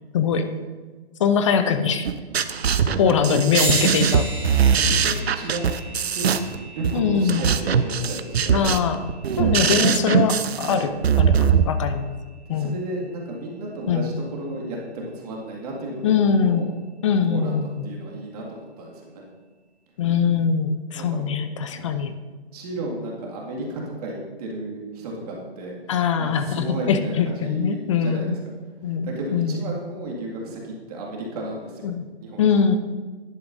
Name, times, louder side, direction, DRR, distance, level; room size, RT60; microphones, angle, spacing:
voice 1, 0.1-0.5 1.2-2.1 3.0-4.3 6.9-7.5 8.5-9.0 9.4-10.9 11.2-12.1 12.5-12.7 13.9-14.1 16.0-16.6 17.0-17.9 20.0-22.1 25.9-28.4 28.8-29.6 31.8-32.0 32.4-32.8, left 6 dB, 30° left, 9 dB, 0.5 m, -22 dB
sound 1, 2.1-11.6, right 7 dB, 75° right, 0.6 m, -21 dB
voice 2, 2.9-3.8 4.7-5.6 6.1-6.3 6.8-8.8 9.3-9.8 10.6-10.9 12.5-16.7 17.2-19.2 21.0-21.3 21.7-21.8 22.5-25.8 26.2-28.4 28.8-31.9 32.2-32.6, right 2 dB, 40° right, -2 dB, 2.1 m, -33 dB
sound 2, 3.6-13.4, right 1 dB, 10° right, 2.8 m, -36 dB
11.0 x 9.5 x 2.6 m, 1.4 s
hypercardioid pair, 145°, 31 cm